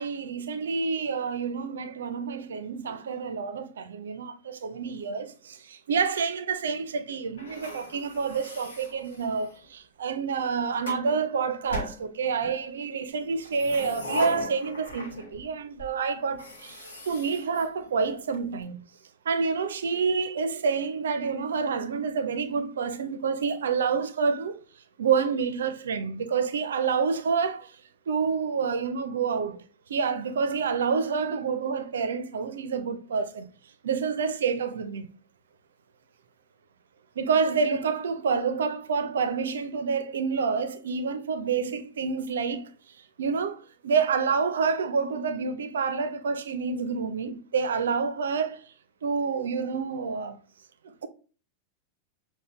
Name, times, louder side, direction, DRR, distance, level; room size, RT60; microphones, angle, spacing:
voice 1, 0.0-18.8 19.3-24.5 25.0-27.7 28.1-29.6 29.9-33.5 33.8-35.0 37.2-42.6 43.2-48.6 49.0-50.4 50.8-51.1, right 5 dB, 65° right, 0.4 m, -28 dB
sound 1, 7.4-9.7 10.4-11.1 11.7-12.6 13.3-15.5 15.8-15.9 16.3-18.4, left 2 dB, 70° left, 0.9 m, -39 dB
6.3 x 2.1 x 2.2 m
figure-of-eight pair, 90°, 0 cm